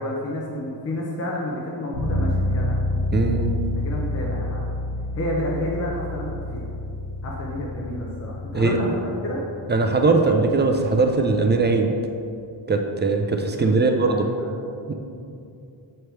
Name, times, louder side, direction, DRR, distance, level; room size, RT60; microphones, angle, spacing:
voice 1, 0.0-3.0 3.7-4.6 5.2-6.6 7.2-9.4 13.5-14.5, left 1 dB, 30° left, -3 dB, 0.7 m, -30 dB
sound 1, 1.9-11.7, left 1 dB, 60° left, 1.2 m, -29 dB
voice 2, 3.1-3.5 8.5-8.8 9.7-11.9 12.7-14.3 14.9-15.0, right 3 dB, 25° right, 3 dB, 0.3 m, -20 dB
6.7 x 3.3 x 4.4 m, 2.6 s
cardioid pair, 115°, 48 cm